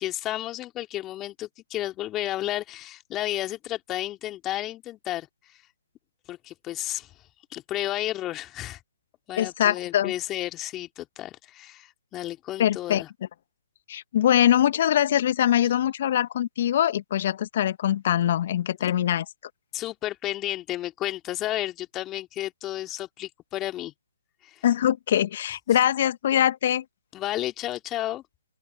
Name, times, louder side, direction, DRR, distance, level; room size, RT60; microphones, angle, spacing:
voice 1, 0.0-5.6 6.3-7.1 7.5-8.8 9.3-13.1 18.8-18.9 19.7-23.9 24.4-24.6 27.1-28.2, left 14 dB, 20° left, 2.5 m, -32 dB
voice 2, 9.4-10.1 12.6-13.0 13.9-19.2 24.6-26.8, left 11 dB, 45° left, 1.6 m, -23 dB
open air
figure-of-eight pair, 140°, 0 cm